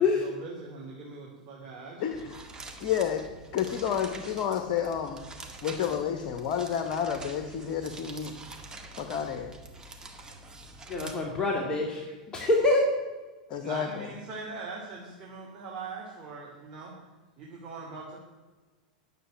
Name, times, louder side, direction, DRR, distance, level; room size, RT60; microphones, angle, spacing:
voice 1, 0.0-2.2 8.6-8.8 11.9-12.0 13.6-16.9 17.4-18.2, right 4 dB, 40° right, -3 dB, 2.9 m, -42 dB
voice 2, 2.0-2.4 2.8-3.3 3.5-5.2 5.6-8.4 9.0-9.6 13.5-14.1, left 8 dB, 50° left, 7 dB, 1.2 m, -30 dB
sound 1, 2.1-11.1, right 2 dB, 15° right, 1.8 m, -46 dB
voice 3, 10.9-12.9, left 2 dB, 20° left, -1 dB, 2.3 m, -25 dB
9.9 x 7.6 x 9.1 m, 1.3 s
hypercardioid pair, 95°, 4 cm